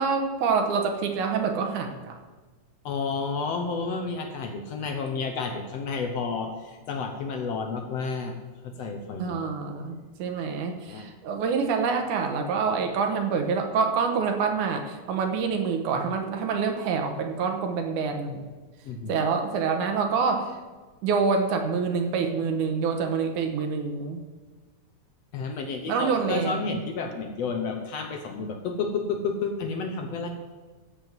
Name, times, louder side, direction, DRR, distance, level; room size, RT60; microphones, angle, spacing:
voice 1, 0.0-2.2 9.2-18.5 19.1-20.6 21.0-24.2 25.9-26.8, right 5 dB, 75° right, 5 dB, 2.6 m, -26 dB
voice 2, 2.9-8.4 8.6-9.5 10.8-11.1 18.9-19.2 25.3-30.3, left 4 dB, 65° left, 4 dB, 1.7 m, -31 dB
14.5 x 5.3 x 7.6 m, 1.3 s
omnidirectional pair, 3.7 m